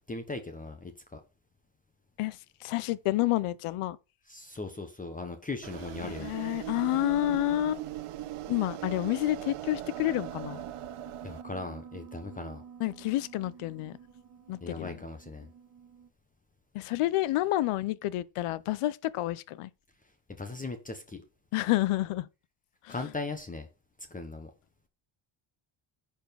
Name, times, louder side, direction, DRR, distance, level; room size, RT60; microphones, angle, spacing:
voice 1, 0.1-1.2 4.3-6.3 11.2-12.6 14.6-15.5 20.4-21.2 22.9-23.7 24.1-24.5, left 3 dB, 15° left, 1.0 m, -38 dB
voice 2, 2.2-4.0 6.0-7.8 8.5-10.6 12.8-14.0 14.5-15.0 16.7-19.7 21.5-22.3 22.9-23.0, left 16 dB, 90° left, 0.8 m, -29 dB
sound 1, 5.6-11.4, right 13 dB, 80° right, 1.0 m, -39 dB
Piano, 9.9-16.1, right 7 dB, 40° right, 1.4 m, -48 dB
10.5 x 4.7 x 5.8 m
cardioid pair, 160°, 50 cm